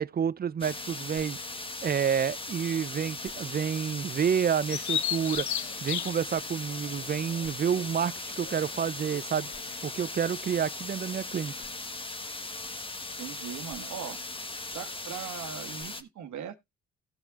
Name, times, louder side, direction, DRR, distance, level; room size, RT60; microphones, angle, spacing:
voice 1, 0.0-1.4 1.8-9.5 9.8-11.5, right 8 dB, 30° right, 0.5 m, -29 dB
sound 1, 0.6-16.0, left 2 dB, 15° left, 1.2 m, -39 dB
Bird vocalization bird call bird song, 4.7-10.4, left 10 dB, 70° left, 0.8 m, -36 dB
voice 2, 13.2-14.2 14.7-16.5, right 8 dB, 70° right, 1.4 m, -39 dB
17.0 x 5.9 x 2.4 m
cardioid pair, 90°, 30 cm